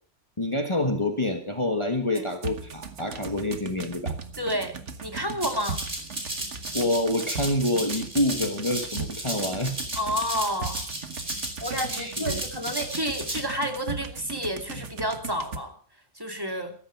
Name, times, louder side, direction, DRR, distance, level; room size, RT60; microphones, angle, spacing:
voice 1, 0.4-4.1 6.7-9.7 11.9-12.4 16.5-16.6, left 1 dB, 25° left, 5 dB, 1.6 m, -27 dB
sound 1, 2.2-15.6, right 5 dB, 75° right, 1.7 m, -38 dB
voice 2, 4.4-4.7 5.0-5.8 9.9-10.9 11.6-15.7 16.1-16.7, equal, 20° right, 4 dB, 2.6 m, -30 dB
Rattle (instrument), 5.4-13.4, right 1 dB, 40° right, 3.9 m, -34 dB
14.0 x 14.0 x 5.9 m, 0.44 s
omnidirectional pair, 1.2 m